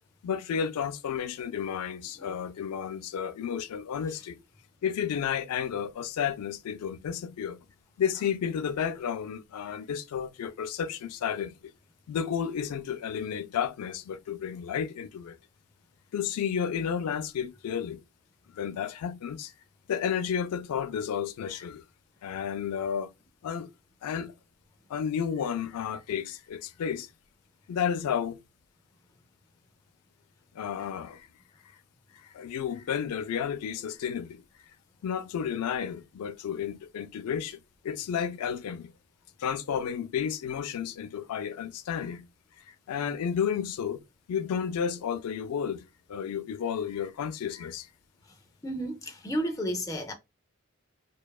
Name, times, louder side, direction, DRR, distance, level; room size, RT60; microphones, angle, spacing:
voice 1, 0.2-4.4 4.8-7.6 8.0-11.7 12.1-15.4 16.1-18.0 18.5-19.5 19.9-21.8 22.2-23.1 23.4-23.7 24.0-24.3 24.9-27.1 27.7-28.4 30.5-31.3 32.1-34.4 35.0-38.9 39.4-42.2 42.7-44.0 44.3-47.9, left 8 dB, 90° left, 0.3 m, -32 dB
voice 2, 48.6-50.1, equal, 15° left, 0.4 m, -32 dB
2.7 x 2.2 x 2.2 m
head